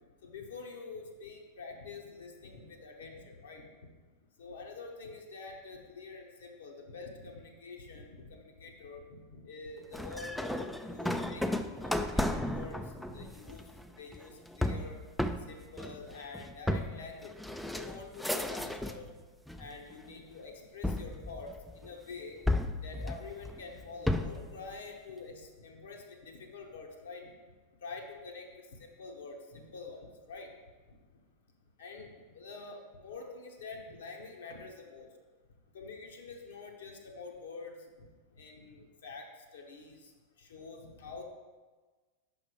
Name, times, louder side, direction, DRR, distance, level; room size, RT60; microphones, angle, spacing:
voice 1, 0.2-3.6 4.4-9.0 9.3-11.4 11.8-12.8 13.1-13.7 14.0-15.0 15.5-17.3 17.7-19.1 19.6-22.4 22.8-27.3 27.8-28.5 29.0-30.0 30.3-30.5 31.8-32.1 32.3-35.1 35.7-38.1 38.4-39.3 39.5-40.0 40.4-41.2, left 4 dB, 65° left, 1 dB, 0.9 m, -46 dB
sound 1, 9.9-19.1 19.5-20.1 20.8-21.9 22.5-24.5, left 1 dB, ahead, 0.3 m, -34 dB
5.8 x 5.4 x 4.7 m, 1.3 s
figure-of-eight pair, 90°, 0 cm